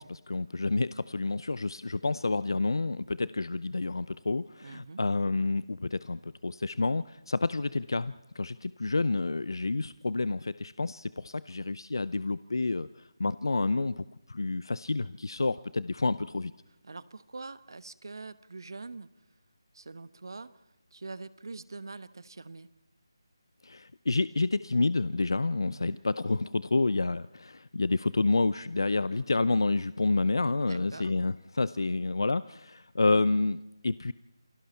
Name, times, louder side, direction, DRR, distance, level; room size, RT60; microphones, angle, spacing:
voice 1, 0.0-12.9 13.2-16.5 23.6-34.1, left 3 dB, 65° left, 17 dB, 0.6 m, -29 dB
voice 2, 4.6-5.0 16.8-19.1 19.7-20.5 20.9-22.7 25.7-26.0 30.6-31.1, right 3 dB, 60° right, 15 dB, 1.2 m, -44 dB
28.5 x 21.5 x 4.4 m, 0.97 s
figure-of-eight pair, 160°, 2 cm